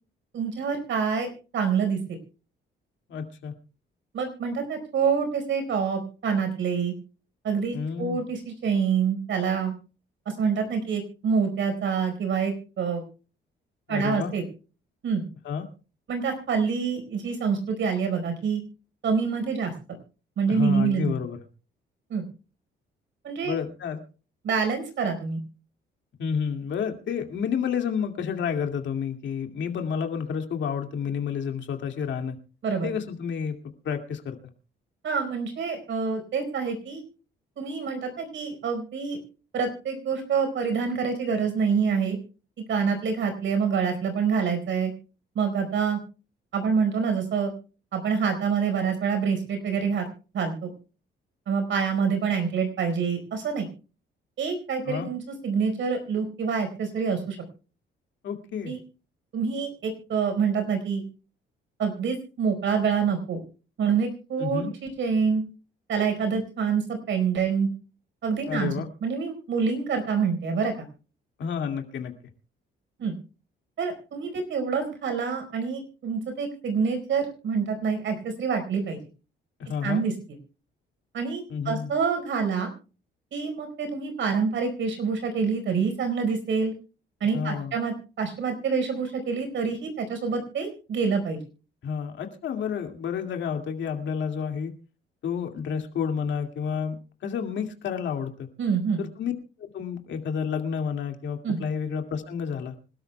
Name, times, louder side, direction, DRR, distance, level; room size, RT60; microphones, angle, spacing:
voice 1, 0.3-2.2 4.1-6.9 7.4-9.7 10.4-13.0 13.9-14.4 15.0-15.2 16.1-18.6 19.0-19.7 20.4-21.2 22.1-22.3 23.2-23.6 24.4-25.4 32.6-32.9 35.0-37.0 37.6-39.2 39.5-42.2 42.7-44.9 45.3-46.0 46.5-47.5 47.9-50.1 50.3-50.7 51.5-53.7 54.4-57.4 58.6-58.8 59.3-61.0 61.8-63.4 63.8-65.4 65.9-67.7 68.2-68.7 69.0-70.9 73.0-73.1 73.8-79.0 79.8-80.1 81.1-82.7 83.3-86.7 87.2-91.4 98.6-99.0 101.4-101.6, right 6 dB, 70° right, 6 dB, 4.7 m, -26 dB
voice 2, 3.1-3.5 7.7-8.2 13.9-14.3 15.4-15.6 20.5-21.4 23.4-24.0 26.2-32.4 32.8-33.6 33.8-34.4 54.9-55.1 58.2-58.8 64.4-64.7 68.5-68.9 71.4-72.1 79.6-80.0 81.5-81.9 87.3-87.7 91.8-94.7 95.2-97.0 97.2-98.5 99.0-99.3 99.6-102.8, left 7 dB, 70° left, 5 dB, 2.3 m, -30 dB
25.5 x 12.5 x 2.3 m, 0.36 s
cardioid pair, 90°, 20 cm